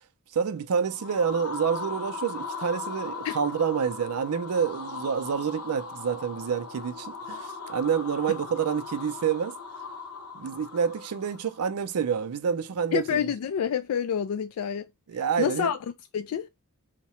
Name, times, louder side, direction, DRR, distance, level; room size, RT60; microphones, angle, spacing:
voice 1, 0.3-9.6 10.3-13.2 15.1-15.7, right 7 dB, 75° right, 0.4 m, -28 dB
sound 1, 0.8-11.6, left 4 dB, 85° left, 0.9 m, -39 dB
voice 2, 12.9-14.9 15.4-15.8 16.1-16.5, left 8 dB, 70° left, 0.3 m, -27 dB
2.8 x 2.1 x 4.1 m
head